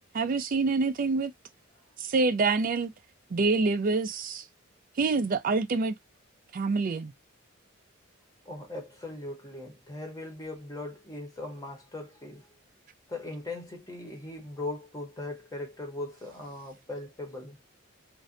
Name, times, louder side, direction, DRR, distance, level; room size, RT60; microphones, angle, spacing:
voice 1, 0.1-1.3 2.0-2.9 3.3-4.4 5.0-5.9 6.5-7.1, right 3 dB, 45° right, 0.4 m, -26 dB
voice 2, 8.4-12.5 13.1-17.6, left 2 dB, 15° left, 0.8 m, -39 dB
2.6 x 2.1 x 2.4 m
head